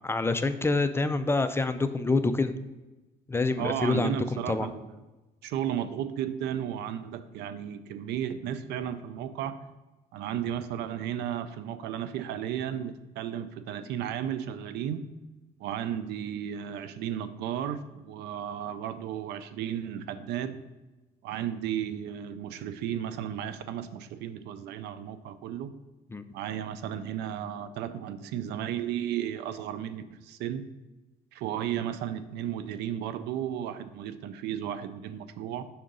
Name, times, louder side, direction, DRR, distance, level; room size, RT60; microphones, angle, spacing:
voice 1, 0.0-2.5 3.3-4.7 26.1-26.2, left 3 dB, 15° left, 10 dB, 0.4 m, -27 dB
voice 2, 3.6-4.9 5.4-9.6 10.1-15.0 15.6-20.6 21.2-25.8 26.3-30.7 31.3-35.7, right 10 dB, 85° right, 12 dB, 0.5 m, -34 dB
5.8 x 3.7 x 5.3 m, 1.1 s
cardioid pair, 110°, 17 cm